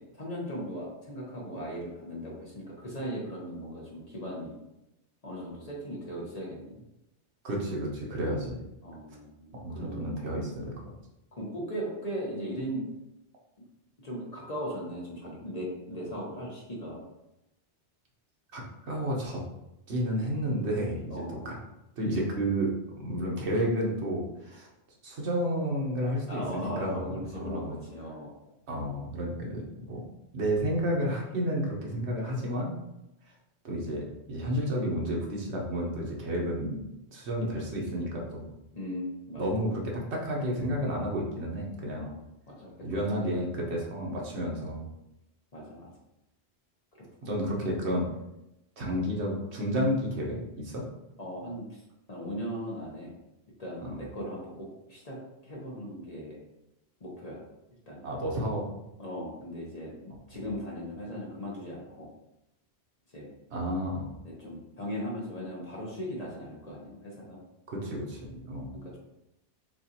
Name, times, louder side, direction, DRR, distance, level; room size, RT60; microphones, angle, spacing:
voice 1, 0.0-4.6 5.2-6.8 8.8-10.2 11.4-12.8 14.0-17.0 21.1-21.6 24.3-24.4 26.3-28.3 38.7-39.6 41.9-42.2 42.5-43.4 45.5-45.9 51.2-51.8 52.1-53.1 53.6-55.2 55.4-56.4 57.0-57.4 57.9-58.0 59.0-59.9 60.3-62.1 63.1-63.3 64.2-67.4 68.7-69.0, equal, 35° left, -4 dB, 1.1 m, -38 dB
voice 2, 7.4-8.6 9.6-10.7 18.5-19.4 19.9-21.5 22.0-22.7 22.9-24.7 25.0-27.7 28.7-30.0 30.3-32.7 33.6-36.8 37.1-38.4 39.4-42.1 42.8-44.9 47.2-48.1 48.8-50.8 53.8-54.0 58.0-58.6 63.5-64.1 67.7-68.7, equal, 70° right, -2 dB, 1.2 m, -31 dB
6.3 x 2.5 x 2.8 m, 0.91 s
omnidirectional pair, 1.2 m